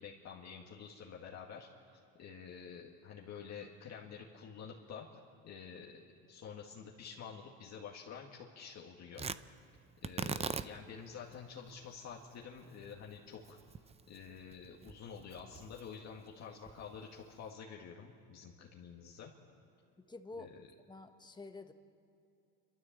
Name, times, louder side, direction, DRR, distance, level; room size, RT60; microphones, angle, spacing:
voice 1, 0.0-5.1 5.4-6.0 6.3-9.3 10.0-13.6 14.1-19.3 20.4-20.5, left 6 dB, 55° left, -1 dB, 2.1 m, -49 dB
Tearing, 9.1-17.5, right 5 dB, 20° right, 0.5 m, -45 dB
voice 2, 20.0-20.6 20.9-21.7, left 3 dB, 15° left, 7 dB, 1.4 m, -49 dB
29.0 x 13.0 x 7.6 m, 2.6 s
cardioid pair, 105°, 33 cm